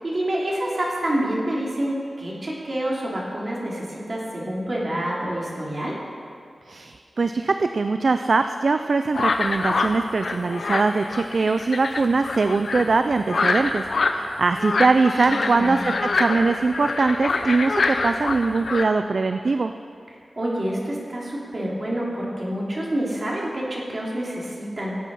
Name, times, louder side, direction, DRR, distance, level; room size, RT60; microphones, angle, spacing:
voice 1, 0.0-5.9 15.2-15.8 20.4-24.9, right 1 dB, 40° right, -4 dB, 3.2 m, -27 dB
voice 2, 6.7-19.7, right 3 dB, 60° right, 8 dB, 0.4 m, -22 dB
sound 1, 9.1-18.8, left 3 dB, 70° left, 0.8 m, -26 dB
17.5 x 8.4 x 5.5 m, 2.4 s
wide cardioid pair, 105°, 0 cm